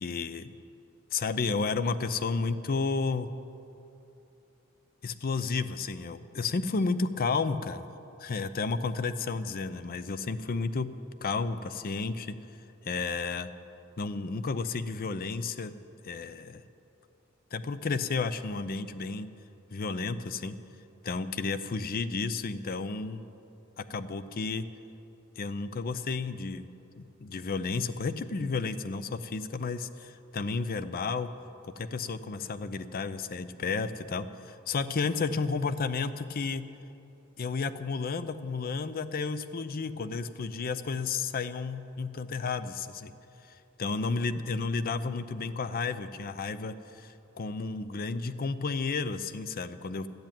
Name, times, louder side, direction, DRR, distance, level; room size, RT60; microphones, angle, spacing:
voice 1, 0.0-0.5 1.1-3.3 5.0-7.9 8.2-10.9 11.2-12.4 12.8-13.5 14.0-15.7 16.0-16.6 17.5-19.3 19.7-20.5 21.0-23.2 23.8-24.7 25.4-26.6 27.0-31.3 31.6-36.6 37.4-43.1 43.5-50.1, left 4 dB, 45° left, 13 dB, 0.5 m, -32 dB
13.5 x 8.0 x 8.9 m, 2.8 s
head